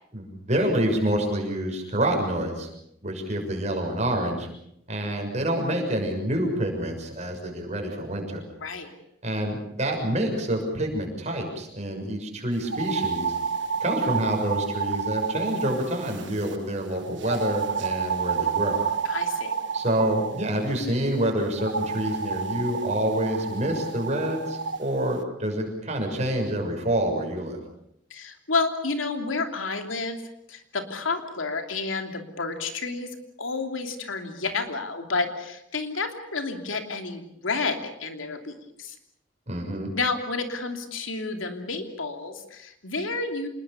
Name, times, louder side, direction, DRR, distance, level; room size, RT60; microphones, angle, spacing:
voice 1, 0.1-2.7 3.0-4.5 4.9-8.5 9.2-13.4 13.8-18.8 19.7-27.6 39.5-39.9, right 1 dB, 35° right, 2 dB, 6.5 m, -27 dB
voice 2, 8.6-8.9 19.0-19.6 28.1-30.2 30.5-33.1 33.4-38.9 39.9-43.5, left 3 dB, 80° left, 5 dB, 3.0 m, -30 dB
sound 1, 12.7-16.6 17.2-20.5 21.6-24.8, right 5 dB, 65° right, 1.5 m, -29 dB
27.0 x 21.0 x 7.1 m, 0.76 s
head